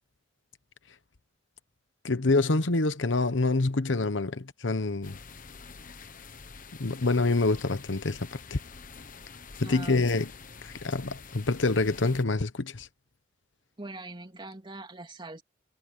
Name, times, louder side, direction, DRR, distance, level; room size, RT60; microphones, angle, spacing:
voice 1, 2.0-5.2 6.8-8.6 9.6-10.3 10.6-12.9, left 3 dB, 75° left, 1.1 m, -26 dB
sound 1, 5.0-12.2, left 5 dB, 45° left, 1.2 m, -47 dB
voice 2, 9.6-10.0 13.8-15.4, right 2 dB, 25° right, 2.8 m, -42 dB
head